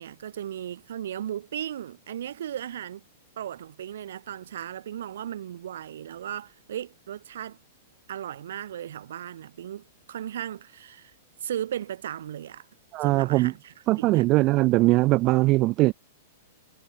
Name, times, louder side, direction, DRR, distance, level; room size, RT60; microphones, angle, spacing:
voice 1, 0.0-3.0 3.4-7.6 8.1-11.1 11.4-12.7 13.0-14.3, right 10 dB, 75° right, 3.2 m, -36 dB
voice 2, 12.9-13.5 13.9-15.9, right 20 dB, 40° right, 0.6 m, -21 dB
hypercardioid pair, 125°, 0 cm